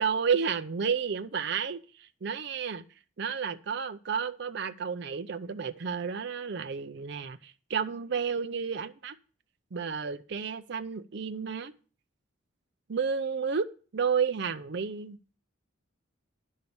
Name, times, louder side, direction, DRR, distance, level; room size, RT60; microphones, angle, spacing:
voice 1, 0.0-2.8 3.2-9.2 9.7-11.7 12.9-13.7 13.9-15.2, right 6 dB, 55° right, 10 dB, 0.5 m, -31 dB
10.5 x 5.6 x 6.9 m, 0.38 s
head